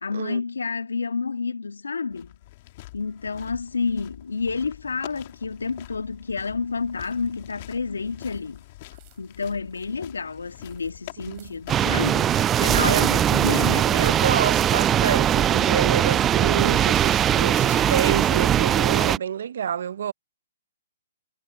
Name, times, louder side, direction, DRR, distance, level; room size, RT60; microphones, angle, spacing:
voice 1, 0.0-2.3 2.9-8.6 9.2-12.3 12.6-14.0, left 4 dB, 90° left, 1.8 m, -29 dB
sound 1, 2.1-18.8, left 18 dB, 40° left, 2.0 m, -45 dB
sound 2, 8.2-18.8, right 28 dB, 35° right, 6.0 m, -59 dB
voice 2, 11.3-11.6 12.7-13.1 13.9-20.1, right 8 dB, 65° right, 0.6 m, -28 dB
sound 3, 11.7-19.2, right 10 dB, 20° right, 0.3 m, -20 dB
hypercardioid pair, 140°, 0 cm